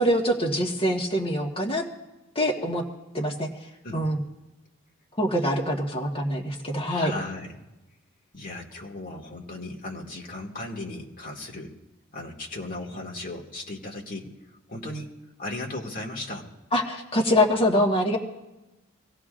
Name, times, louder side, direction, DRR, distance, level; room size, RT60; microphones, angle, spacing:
voice 1, 0.0-1.9 2.3-2.8 3.1-3.5 3.9-4.2 5.2-7.1 16.7-18.2, equal, 25° left, -1 dB, 1.4 m, -24 dB
voice 2, 6.8-7.6 8.3-11.7 12.1-14.3 14.7-15.1 15.4-16.5, left 2 dB, 45° left, -1 dB, 1.9 m, -36 dB
25.5 x 16.5 x 2.5 m, 1.0 s
head